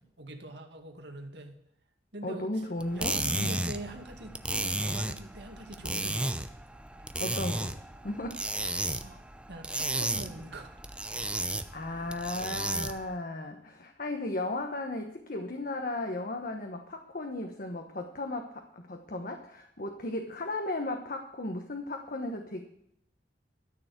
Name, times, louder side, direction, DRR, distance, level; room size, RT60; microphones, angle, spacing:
voice 1, 0.2-1.6 2.1-2.7 2.9-6.4 8.9-9.2 9.5-10.7, right 2 dB, 70° right, 4 dB, 2.1 m, -44 dB
voice 2, 2.2-3.6 7.2-7.8 8.0-8.4 11.3-22.6, left 2 dB, 55° left, 4 dB, 1.1 m, -35 dB
sound 1, 2.8-13.1, right 2 dB, 5° right, 0.6 m, -33 dB
13.0 x 6.9 x 8.1 m, 0.74 s
head